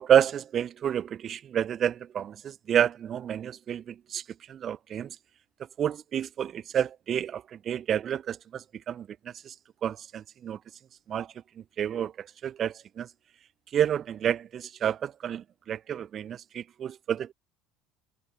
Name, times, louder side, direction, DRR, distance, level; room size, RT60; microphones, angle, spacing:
voice 1, 0.0-4.2 4.5-5.2 5.8-9.5 9.8-10.6 11.1-11.3 11.8-13.1 13.7-17.3, right 9 dB, 45° right, 0.4 m, -29 dB
hypercardioid pair, 80°, 0 cm